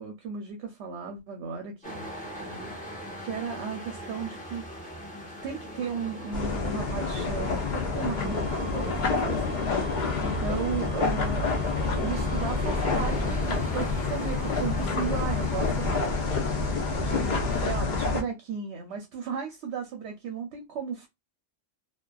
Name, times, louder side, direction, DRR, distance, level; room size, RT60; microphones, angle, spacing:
voice 1, 0.0-2.1 2.4-2.7 3.2-4.6 5.4-9.6 10.2-11.5 11.9-16.6 17.0-21.1, right 6 dB, 65° right, 0.8 m, -35 dB
sound 1, 1.8-17.6, equal, 5° left, 0.8 m, -41 dB
sound 2, 6.3-18.2, left 4 dB, 50° left, 0.6 m, -28 dB
sound 3, 8.1-12.7, right 5 dB, 35° right, 0.4 m, -46 dB
2.4 x 2.3 x 2.2 m
omnidirectional pair, 1.3 m